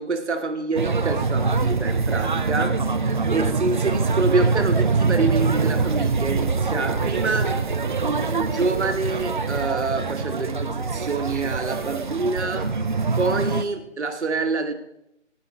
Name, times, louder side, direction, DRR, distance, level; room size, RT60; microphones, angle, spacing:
voice 1, 0.0-2.8 3.3-7.5 8.0-12.7 13.2-14.7, right 3 dB, 65° right, 6 dB, 1.5 m, -26 dB
sound 1, 0.8-13.6, right 4 dB, 40° right, 0.5 m, -24 dB
16.5 x 5.7 x 4.1 m, 0.78 s
figure-of-eight pair, 160°, 37 cm